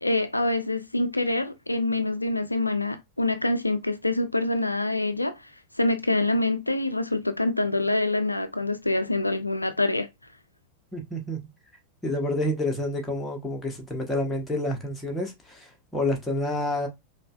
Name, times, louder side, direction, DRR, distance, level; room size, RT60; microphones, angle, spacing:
voice 1, 0.0-5.4 5.8-10.1, left 2 dB, 85° left, 0.3 m, -25 dB
voice 2, 10.9-11.4 12.0-16.9, left 1 dB, 10° left, 1.1 m, -29 dB
5.2 x 2.3 x 2.3 m
figure-of-eight pair, 90°, 0 cm